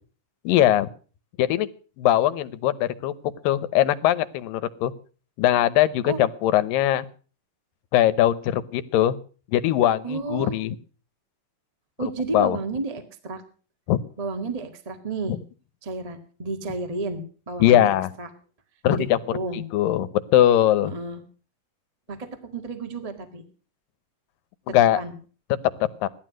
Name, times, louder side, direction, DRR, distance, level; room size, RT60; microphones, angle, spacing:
voice 1, 0.4-0.9 1.4-1.7 2.0-3.1 3.4-4.9 5.4-7.1 7.9-9.2 9.5-10.8 12.3-12.6 13.9-14.0 17.6-18.1 18.8-19.2 19.7-20.9 24.7-25.0 26.0-26.1, left 12 dB, 90° left, 15 dB, 2.6 m, -20 dB
voice 2, 10.0-10.6 12.0-13.4 14.2-15.3 15.8-18.3 18.9-19.0 19.3-19.6 20.8-21.2 22.1-23.4 24.7-25.1, right 3 dB, 25° right, 6 dB, 0.7 m, -31 dB
17.0 x 12.0 x 6.2 m, 0.40 s
omnidirectional pair, 3.9 m